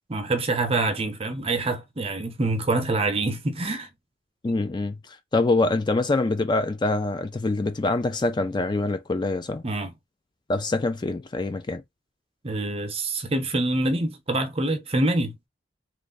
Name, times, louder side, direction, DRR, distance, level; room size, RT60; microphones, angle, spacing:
voice 1, 0.1-3.9 9.6-9.9 12.4-15.4, right 2 dB, 30° right, 0.8 m, -26 dB
voice 2, 4.4-9.6 10.5-11.8, left 2 dB, 25° left, 0.4 m, -25 dB
3.1 x 2.5 x 3.8 m
head